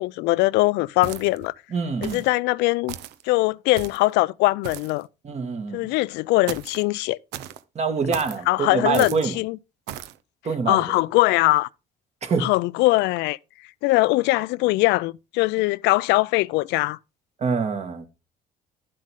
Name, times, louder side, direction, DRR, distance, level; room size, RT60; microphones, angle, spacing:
voice 1, 0.0-1.5 2.0-2.9 3.3-5.1 5.7-7.2 8.5-9.6 10.7-11.7 12.4-13.4 13.8-17.0, left 20 dB, 90° left, 0.4 m, -21 dB
sound 1, 1.0-1.5 2.0-2.3 2.9-3.2 3.7-4.1 4.6-5.0 6.5-6.8 7.3-7.6 8.1-8.4 8.9-9.3 9.9-10.2, right 11 dB, 85° right, 0.7 m, -36 dB
voice 2, 1.7-2.2 5.2-5.9 7.8-9.4 10.4-11.0 12.2-12.5 17.4-18.1, right 5 dB, 40° right, 1.9 m, -25 dB
11.0 x 7.5 x 3.7 m
cardioid pair, 110°, 17 cm